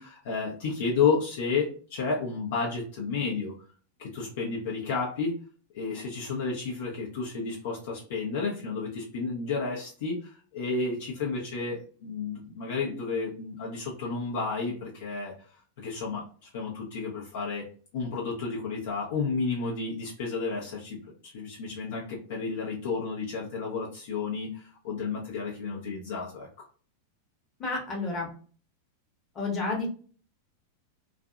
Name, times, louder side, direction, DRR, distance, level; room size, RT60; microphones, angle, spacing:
voice 1, 0.0-3.5 4.0-5.4 5.7-15.3 15.8-16.2 16.5-17.7 17.9-21.0 21.2-26.5, left 4 dB, 55° left, -3 dB, 0.6 m, -31 dB
voice 2, 27.6-28.3 29.3-29.9, left 3 dB, 25° left, -1 dB, 0.9 m, -30 dB
2.6 x 2.4 x 2.3 m, 0.41 s
figure-of-eight pair, 90°, 0 cm